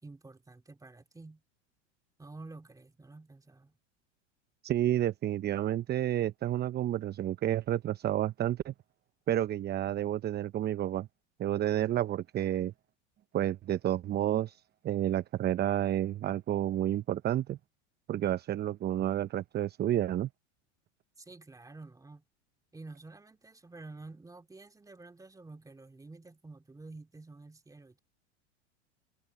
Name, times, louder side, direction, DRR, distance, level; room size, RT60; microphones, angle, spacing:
voice 1, 0.0-1.4 2.2-3.8 21.2-22.2 22.7-28.0, right 3 dB, 10° right, 2.5 m, -50 dB
voice 2, 4.6-8.7 9.3-11.1 11.4-12.7 13.3-17.6 18.1-20.3, right 12 dB, 30° right, 0.8 m, -30 dB
hypercardioid pair, 95°, 35 cm